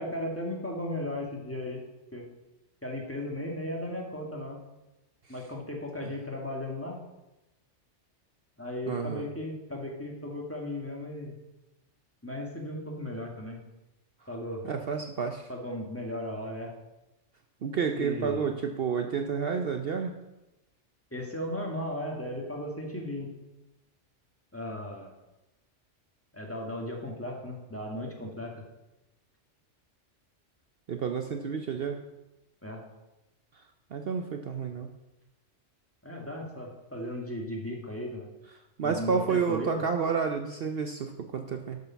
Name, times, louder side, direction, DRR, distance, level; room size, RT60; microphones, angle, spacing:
voice 1, 0.0-1.8 2.1-2.3 2.8-4.6 5.3-7.0 8.6-11.3 12.2-13.6 14.3-14.6 15.5-16.7 17.9-18.4 21.1-23.3 24.5-25.1 26.3-28.6 32.6-32.9 36.0-38.3 38.8-39.9, left 1 dB, 10° left, -1 dB, 1.9 m, -36 dB
voice 2, 8.9-9.2 14.7-15.5 17.6-20.1 30.9-32.0 33.9-34.9 38.8-41.8, right 6 dB, 55° right, 5 dB, 0.9 m, -30 dB
12.0 x 6.7 x 5.8 m, 0.99 s
omnidirectional pair, 1.2 m